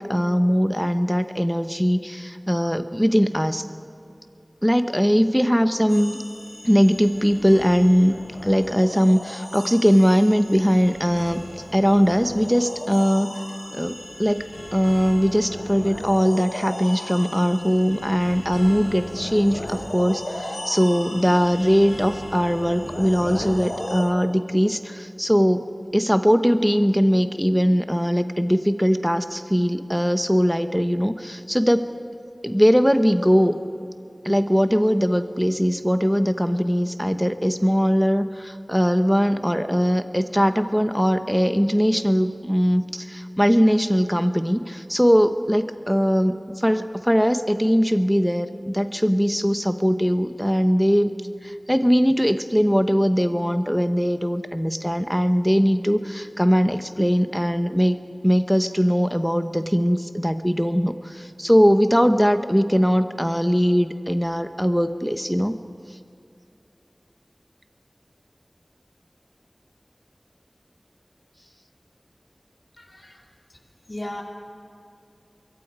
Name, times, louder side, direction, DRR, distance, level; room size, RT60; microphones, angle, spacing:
voice 1, 0.0-3.6 4.6-6.2 6.6-8.1 8.4-11.4 11.7-13.4 13.7-25.6 25.9-31.9 32.4-33.6 34.2-51.1 51.4-58.0 58.2-65.6, equal, ahead, 9 dB, 1.1 m, -20 dB
sound 1, 5.9-24.0, left 1 dB, 90° left, 6.0 m, -36 dB
voice 2, 72.8-73.2 73.9-74.2, left 1 dB, 50° left, 1 dB, 2.9 m, -35 dB
25.5 x 22.5 x 5.0 m, 2.6 s
wide cardioid pair, 40°, 0 cm